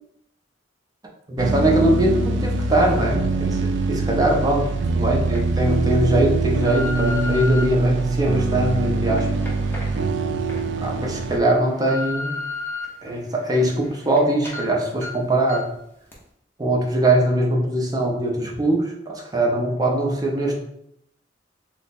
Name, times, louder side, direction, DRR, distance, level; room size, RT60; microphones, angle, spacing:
voice 1, 1.3-9.3 10.8-12.4 13.0-15.6 16.6-20.6, right 1 dB, 20° right, -1 dB, 0.6 m, -21 dB
sound 1, 1.4-11.4, right 3 dB, 70° right, 0.3 m, -23 dB
sound 2, 4.3-4.4 5.1-5.4 6.0-7.6 8.3-10.6 11.0-11.1 11.5-12.8 13.3-14.2 14.4-14.6 15.0-15.1 15.5-15.8 16.1-16.2, left 3 dB, 10° left, 0.7 m, -33 dB
3.3 x 2.1 x 4.1 m, 0.77 s
head